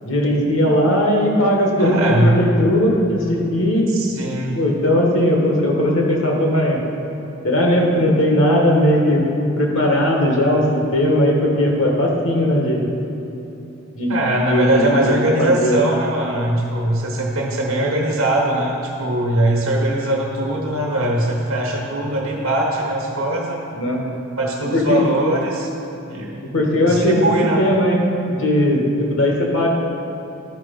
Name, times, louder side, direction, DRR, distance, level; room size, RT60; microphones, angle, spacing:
voice 1, 0.0-3.9 4.5-6.8 7.4-9.2 9.6-12.8 13.9-14.2 14.4-14.8 15.1-15.8 23.7-24.0 24.7-25.0 26.5-27.2 27.6-28.0 28.3-29.7, left 1 dB, 70° left, -1 dB, 1.4 m, -18 dB
voice 2, 1.8-2.4 3.9-4.6 14.1-23.6 24.4-25.7 26.1-26.4 26.8-27.7, right 1 dB, 80° right, -2 dB, 1.1 m, -21 dB
11.0 x 4.6 x 5.2 m, 3.0 s
head